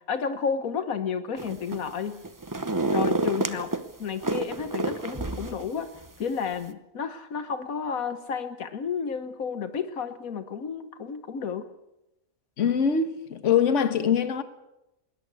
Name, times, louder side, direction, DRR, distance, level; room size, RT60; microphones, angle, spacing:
voice 1, 0.0-2.2 2.9-11.7, left 6 dB, 80° left, 1.6 m, -32 dB
sound 1, 1.4-1.9 2.2-3.8 4.2-5.6 6.0-6.1, right 2 dB, 15° right, 0.8 m, -28 dB
voice 2, 12.6-14.4, left 7 dB, 60° left, 1.6 m, -23 dB
20.5 x 20.0 x 8.3 m
omnidirectional pair, 1.5 m